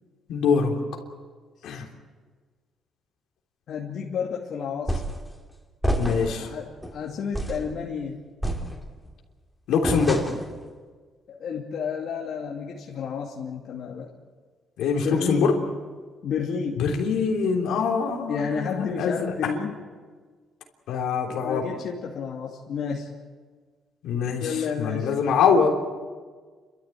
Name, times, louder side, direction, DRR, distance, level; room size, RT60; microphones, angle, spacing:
voice 1, 0.3-0.7 1.6-1.9 6.0-6.5 9.7-10.3 14.8-15.6 16.8-19.5 20.9-21.7 24.0-25.7, left 5 dB, 85° left, 1 dB, 3.4 m, -24 dB
voice 2, 3.7-5.0 6.2-8.2 11.3-14.1 15.0-15.5 16.2-16.9 18.3-19.8 21.3-23.1 24.4-25.1, left 6 dB, 70° left, -2 dB, 2.6 m, -31 dB
sound 1, 4.9-5.3 5.8-6.4 6.8-7.0 7.3-7.7 8.4-9.1 9.8-10.6, right 1 dB, ahead, 3.2 m, -28 dB
29.5 x 13.5 x 9.3 m, 1.5 s
cardioid pair, 90°, 0 cm